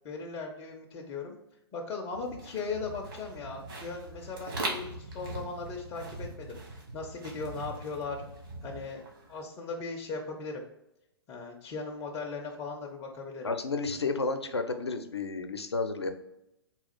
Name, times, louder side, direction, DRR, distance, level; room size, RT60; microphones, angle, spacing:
voice 1, 0.0-1.3 1.7-8.2 8.6-9.0 9.3-10.6 11.3-13.5, left 4 dB, 20° left, 1 dB, 0.4 m, -38 dB
sound 1, 2.1-9.4, right 2 dB, 55° right, 1.2 m, -41 dB
voice 2, 13.4-16.1, left 3 dB, 80° left, 7 dB, 0.5 m, -31 dB
4.0 x 2.3 x 4.1 m, 0.86 s
figure-of-eight pair, 115°, 14 cm